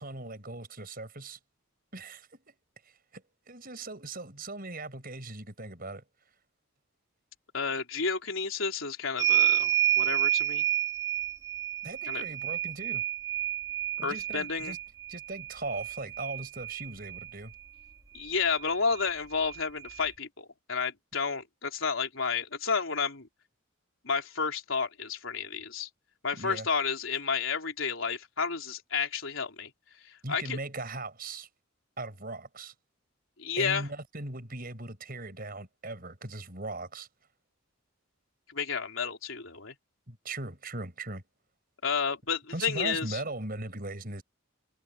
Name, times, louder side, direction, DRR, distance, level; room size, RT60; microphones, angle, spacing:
voice 1, 0.0-1.4 1.9-2.5 3.1-6.0 11.8-13.1 14.0-14.8 15.1-17.5 26.3-26.7 30.2-31.5 32.0-32.7 33.6-37.1 40.1-41.2 42.5-44.2, right 2 dB, 45° right, 5.9 m, -39 dB
voice 2, 7.5-9.7 10.0-10.6 12.1-12.2 14.0-14.8 18.1-23.3 24.0-25.9 26.2-29.7 30.0-30.6 33.4-33.9 38.5-39.7 41.8-43.2, left 5 dB, 70° left, 3.8 m, -31 dB
sound 1, 9.2-17.3 18.6-18.7 19.0-20.0, right 12 dB, 15° right, 2.9 m, -30 dB
head